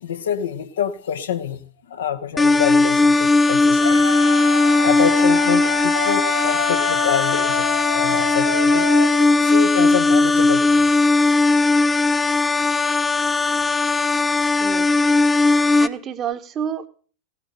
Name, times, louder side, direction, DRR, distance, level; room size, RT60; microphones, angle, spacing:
voice 1, 0.0-1.6 1.9-4.5 4.8-8.9 9.4-10.9, left 9 dB, 65° left, 1.3 m, -26 dB
sound 1, 2.4-15.9, left 3 dB, 10° left, 0.6 m, -18 dB
sound 2, 3.8-9.9, left 3 dB, 80° left, 0.8 m, -28 dB
voice 2, 14.6-15.1 15.8-16.9, right 8 dB, 30° right, 1.2 m, -29 dB
17.0 x 8.3 x 6.7 m
figure-of-eight pair, 90°, 0 cm